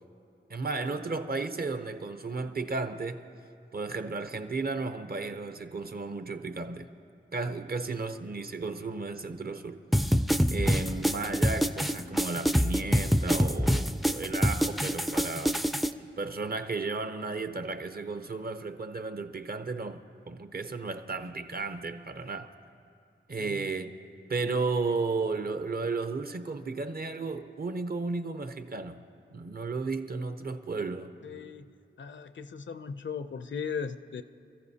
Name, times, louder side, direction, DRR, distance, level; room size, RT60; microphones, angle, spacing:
voice 1, 0.5-3.3 3.7-6.9 7.3-9.8 10.5-15.6 16.0-20.0 20.3-22.5 23.3-23.9 24.3-29.0 29.3-31.1, right 3 dB, 50° right, 0.7 m, -34 dB
sound 1, 9.9-15.9, equal, ahead, 0.4 m, -25 dB
voice 2, 23.4-23.7 31.2-31.7 32.0-34.2, left 6 dB, 65° left, 0.5 m, -38 dB
27.0 x 14.5 x 2.8 m
wide cardioid pair, 85°, 21 cm